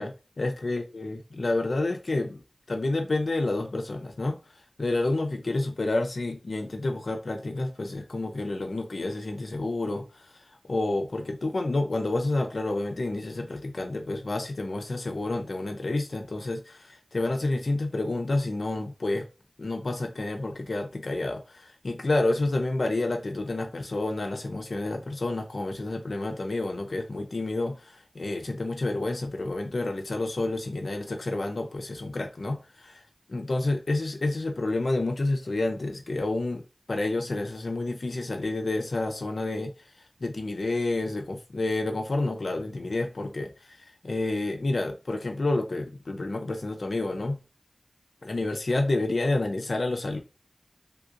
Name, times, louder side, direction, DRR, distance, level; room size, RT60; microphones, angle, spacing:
voice 1, 0.0-2.4 2.7-4.4 4.8-10.3 10.7-19.3 19.6-33.0 33.3-36.6 36.9-39.7 40.2-43.8 44.0-47.4 48.2-50.2, left 2 dB, 80° left, 0.6 m, -29 dB
3.4 x 2.8 x 2.4 m
wide cardioid pair, 50°, 0 cm